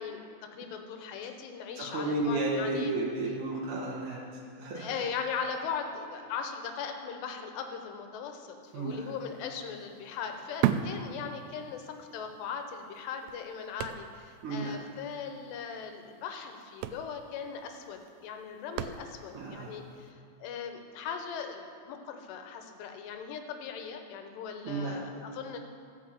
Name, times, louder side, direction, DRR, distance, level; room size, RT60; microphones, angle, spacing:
voice 1, 0.0-2.9 4.8-25.6, left 6 dB, 80° left, 5 dB, 3.1 m, -39 dB
voice 2, 1.8-4.2 4.6-4.9 8.7-9.1 14.4-14.8 19.3-19.8 24.6-25.1, right 2 dB, 55° right, -3 dB, 2.4 m, -32 dB
sound 1, 8.8-9.0 9.2-11.9 12.2-12.3 12.9-14.4 14.7-14.8 15.1-15.3 16.2-16.3 16.6-19.5 20.0-20.1, right 10 dB, 85° right, 2.6 m, -34 dB
16.0 x 5.9 x 7.6 m, 2.4 s
omnidirectional pair, 4.9 m